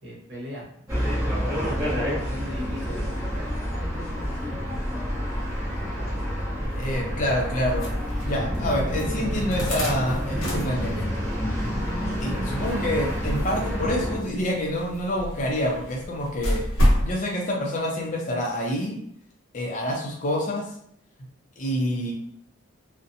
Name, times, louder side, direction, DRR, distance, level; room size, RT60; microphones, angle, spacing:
voice 1, 0.0-1.1 1.4-4.7 5.6-7.0, left 1 dB, 60° right, -6 dB, 1.0 m, -39 dB
sound 1, 0.9-14.2, equal, 15° right, 1.0 m, -28 dB
sound 2, 6.6-17.1, equal, 85° left, 0.8 m, -30 dB
voice 2, 6.7-7.9 8.2-11.1 12.2-16.6 17.0-19.0 19.5-20.6 21.6-22.1, equal, 40° left, -1 dB, 0.5 m, -27 dB
2.6 x 2.1 x 2.6 m, 0.69 s
head